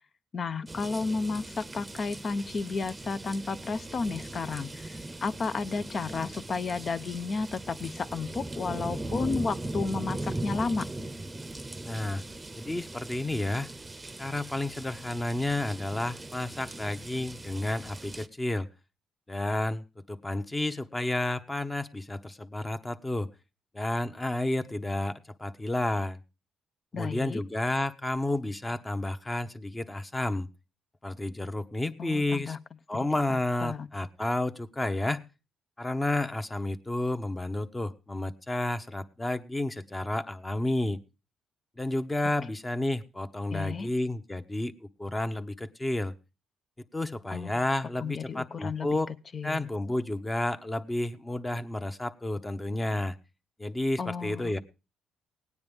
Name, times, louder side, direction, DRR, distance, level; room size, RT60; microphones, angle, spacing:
voice 1, 0.3-10.9 26.9-27.4 32.0-32.6 32.9-33.9 43.5-43.9 47.3-47.6 48.0-49.0 49.3-49.7 54.0-54.5, left 4 dB, 45° left, 13 dB, 0.7 m, -32 dB
sound 1, 0.7-18.3, right 2 dB, 20° right, 0.8 m, -39 dB
voice 2, 11.9-12.2 12.6-13.7 14.2-18.7 19.3-23.3 23.7-25.1 25.4-26.2 26.9-30.5 31.0-32.6 32.9-35.2 35.8-41.0 41.8-46.1 46.9-49.1 49.4-53.1 53.6-54.6, left 2 dB, 15° left, 8 dB, 0.9 m, -31 dB
17.5 x 9.6 x 3.5 m, 0.31 s
cardioid pair, 90°, 0 cm